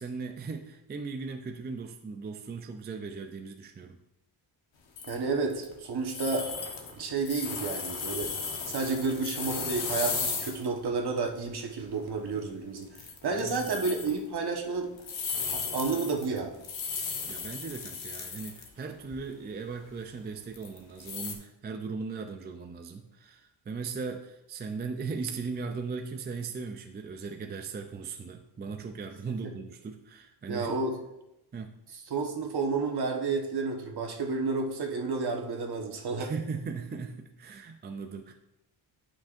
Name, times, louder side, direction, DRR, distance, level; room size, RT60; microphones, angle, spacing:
voice 1, 0.0-4.0 13.3-13.7 17.3-30.8 31.5-31.7 36.2-38.3, right 4 dB, 25° right, 5 dB, 0.3 m, -38 dB
sound 1, 5.0-5.8 6.1-10.7 11.0-11.1 11.6-11.8 12.1-12.4 12.8-14.2 15.0-18.7 19.0-19.1 20.5-21.3, left 5 dB, 65° left, 1.3 m, -35 dB
voice 2, 5.1-6.5 7.0-8.3 8.7-14.9 15.5-16.6 30.5-30.9 32.1-36.3, right 4 dB, 50° right, 2 dB, 1.3 m, -31 dB
11.5 x 5.8 x 2.5 m, 0.90 s
wide cardioid pair, 155°, 49 cm